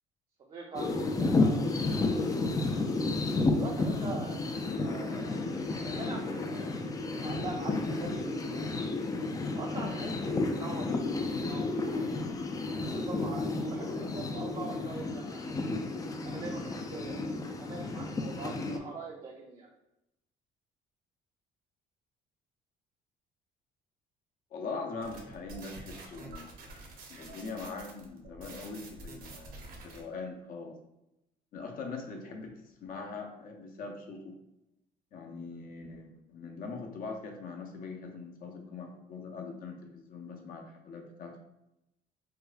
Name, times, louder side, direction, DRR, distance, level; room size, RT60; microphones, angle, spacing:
voice 1, 0.5-1.6 1.9-2.8 3.5-4.4 4.8-5.3 5.8-8.7 9.5-12.1 12.8-15.7 16.2-19.7, right 3 dB, 35° right, -2 dB, 0.5 m, -43 dB
sound 1, 0.7-18.8, left 3 dB, 20° left, 0.3 m, -32 dB
voice 2, 24.5-26.5 27.1-30.7 31.5-34.3 35.1-41.4, left 4 dB, 55° left, 2 dB, 0.7 m, -42 dB
sound 2, 25.0-30.0, right 2 dB, 60° right, 0.9 m, -48 dB
4.6 x 2.1 x 2.5 m, 0.87 s
cardioid pair, 110°, 17 cm